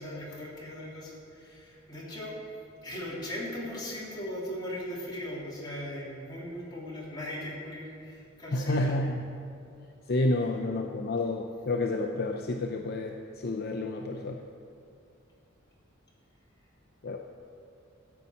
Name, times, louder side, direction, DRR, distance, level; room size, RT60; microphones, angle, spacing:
voice 1, 0.0-2.3 2.8-9.0, left 1 dB, 20° left, -6 dB, 3.2 m, -38 dB
voice 2, 8.5-9.2 10.1-14.4 17.0-17.2, left 2 dB, 50° left, 2 dB, 0.6 m, -30 dB
14.0 x 5.7 x 8.3 m, 2.5 s
head